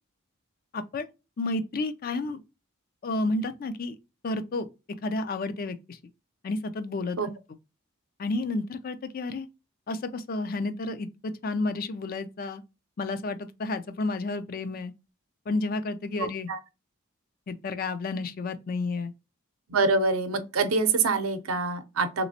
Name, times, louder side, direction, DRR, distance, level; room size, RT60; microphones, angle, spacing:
voice 1, 0.7-1.1 1.4-2.4 3.0-4.0 4.2-4.7 5.0-6.0 6.4-7.2 8.2-9.5 9.9-12.6 13.0-14.9 15.5-16.5 17.5-19.1, left 2 dB, 45° left, 0.4 m, -31 dB
voice 2, 19.7-22.3, right 3 dB, 90° right, 0.6 m, -25 dB
3.2 x 3.0 x 2.6 m
head